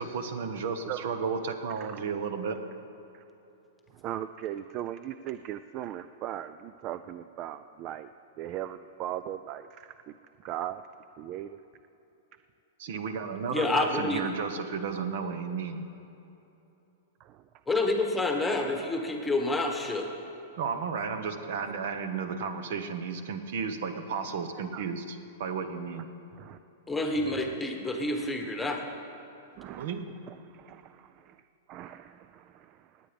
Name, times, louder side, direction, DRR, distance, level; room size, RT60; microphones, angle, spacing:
voice 1, 0.0-2.6 12.8-15.9 20.6-26.1 29.8-30.1, right 5 dB, 60° right, 8 dB, 1.1 m, -33 dB
voice 2, 4.0-8.1 8.4-10.1 10.4-10.8 11.2-11.6 17.2-17.4 21.7-21.8 24.6-24.8 26.4-26.6 27.3-27.4 29.6-29.9 30.3-31.3 31.7-32.8, right 12 dB, 30° right, 12 dB, 0.3 m, -39 dB
voice 3, 13.5-14.2 17.7-20.1 26.9-28.8, left 2 dB, 5° left, 3 dB, 1.2 m, -28 dB
18.5 x 8.6 x 5.2 m, 3.0 s
hypercardioid pair, 150°, 0 cm